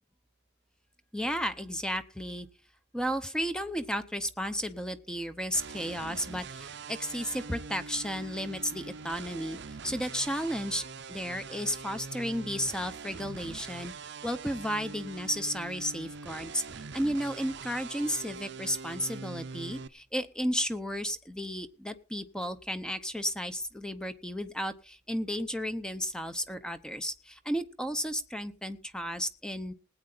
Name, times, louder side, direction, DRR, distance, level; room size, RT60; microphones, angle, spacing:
voice 1, 1.1-2.5 2.9-13.9 14.2-29.7, equal, 5° left, 10 dB, 0.7 m, -33 dB
sound 1, 5.5-19.9, right 4 dB, 60° right, 0.7 m, -43 dB
20.0 x 8.7 x 4.0 m, 0.38 s
head